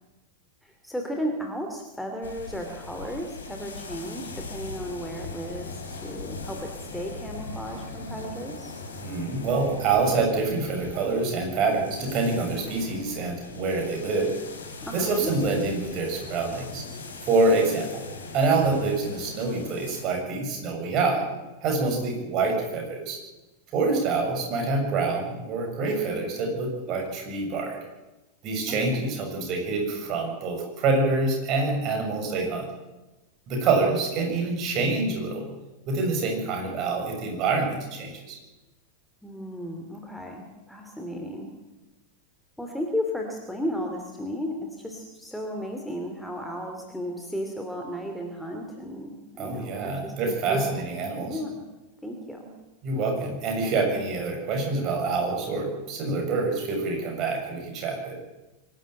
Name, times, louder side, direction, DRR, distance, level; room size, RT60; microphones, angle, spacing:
voice 1, 0.6-8.7 14.8-15.3 26.9-27.0 28.7-29.1 39.2-41.5 42.6-50.7 51.2-51.6 52.0-52.5, equal, ahead, 2 dB, 2.8 m, -34 dB
sound 1, 2.2-20.0, left 3 dB, 70° left, 4.0 m, -40 dB
voice 2, 9.0-14.3 14.9-16.8 17.3-18.0 18.3-21.3 21.6-23.2 23.7-27.8 28.4-32.6 33.5-35.5 35.9-38.4 49.4-51.4 52.8-58.2, right 3 dB, 35° right, 2 dB, 6.9 m, -26 dB
24.5 x 12.5 x 9.0 m, 1.1 s
figure-of-eight pair, 90°, 0 cm